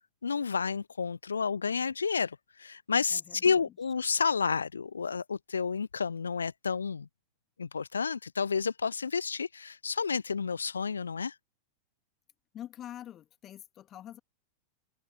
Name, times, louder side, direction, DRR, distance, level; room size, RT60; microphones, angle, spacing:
voice 1, 0.2-7.1 7.6-11.4, left 5 dB, 75° left, 0.6 m, -30 dB
voice 2, 3.1-3.9 12.5-14.2, left 11 dB, 30° left, 2.1 m, -46 dB
open air
figure-of-eight pair, 90°, 0 cm